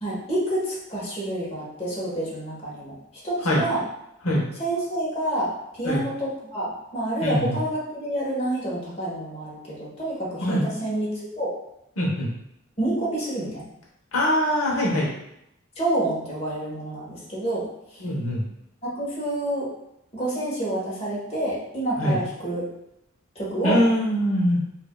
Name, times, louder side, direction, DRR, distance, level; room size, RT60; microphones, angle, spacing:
voice 1, 0.0-2.9 3.2-3.8 4.6-11.5 12.8-13.7 15.8-17.7 17.9-18.0 18.8-19.7 20.1-22.7 23.3-23.8, right 1 dB, 30° left, -6 dB, 1.3 m, -28 dB
voice 2, 7.2-7.6 10.4-10.7 12.0-12.3 14.1-15.1 18.0-18.4 22.0-22.2 23.6-24.6, equal, 90° left, -4 dB, 1.0 m, -22 dB
5.2 x 2.7 x 2.2 m, 0.82 s
head